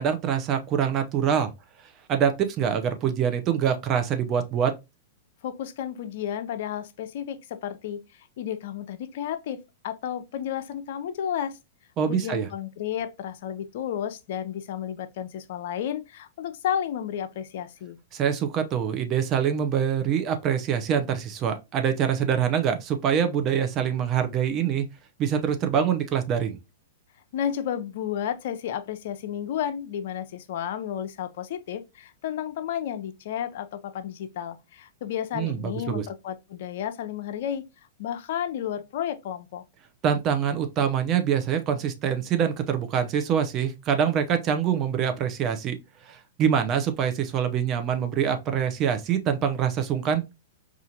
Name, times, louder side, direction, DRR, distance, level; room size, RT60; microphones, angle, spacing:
voice 1, 0.0-1.5 2.1-4.7 12.0-12.5 18.1-24.9 25.2-26.6 35.3-36.1 40.0-45.8 46.1-50.2, right 8 dB, 35° right, 0.6 m, -25 dB
voice 2, 5.4-11.6 12.1-18.0 27.3-37.7 38.0-39.6, left 9 dB, 60° left, 0.4 m, -32 dB
4.3 x 2.4 x 2.7 m
hypercardioid pair, 120°, 0 cm